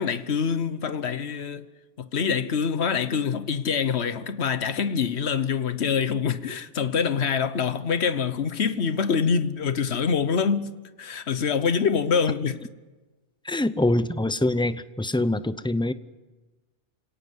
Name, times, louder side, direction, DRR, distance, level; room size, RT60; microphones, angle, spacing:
voice 1, 0.0-1.6 2.0-10.7 11.0-12.6, left 6 dB, 65° left, 1.3 m, -25 dB
voice 2, 13.4-15.9, left 1 dB, 5° left, 0.5 m, -24 dB
27.5 x 18.0 x 9.7 m
omnidirectional pair, 1.2 m